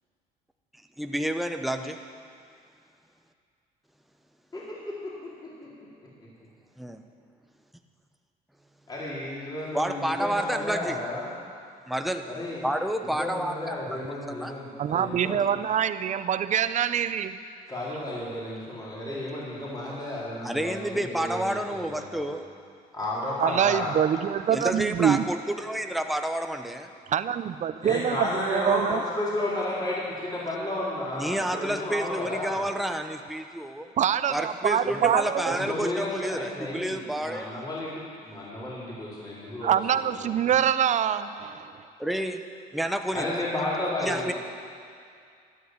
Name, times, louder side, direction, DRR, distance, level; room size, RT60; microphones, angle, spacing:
voice 1, 1.0-2.0 6.8-7.0 9.7-11.0 11.9-12.2 12.6-13.8 14.4-14.5 20.4-22.5 24.5-26.9 31.2-33.9 34.3-37.5 42.0-42.4 42.7-43.3 44.0-44.3, right 1 dB, ahead, 5 dB, 0.9 m, -29 dB
voice 2, 4.5-5.7 8.9-11.3 12.3-12.7 13.2-15.6 17.7-22.3 22.9-24.0 27.8-32.6 34.8-35.1 35.5-39.7 40.0-40.1 40.4-40.5 43.1-44.3, left 1 dB, 25° left, -7 dB, 4.1 m, -32 dB
voice 3, 14.8-17.4 23.4-25.2 27.1-29.0 34.0-35.6 39.6-41.7, right 9 dB, 45° right, 13 dB, 0.7 m, -25 dB
12.5 x 11.5 x 8.0 m, 2.3 s
cardioid pair, 110°, 17 cm